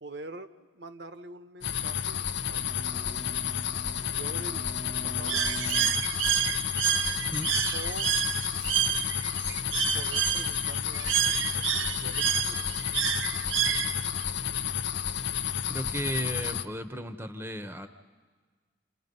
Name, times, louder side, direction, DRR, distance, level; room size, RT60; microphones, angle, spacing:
voice 1, 0.0-3.3 4.0-4.7 5.0-5.5 7.7-8.2 9.9-12.7, right 2 dB, 60° right, 9 dB, 1.2 m, -45 dB
sound 1, 1.6-16.6, left 9 dB, 65° left, 0.7 m, -31 dB
Bowed string instrument, 2.3-6.7, equal, 35° left, 1.3 m, -46 dB
Bird, 5.3-14.2, right 10 dB, 80° right, 0.8 m, -29 dB
voice 2, 15.7-17.9, right 1 dB, 10° right, 9 dB, 1.0 m, -35 dB
29.5 x 28.5 x 5.4 m, 1.5 s
head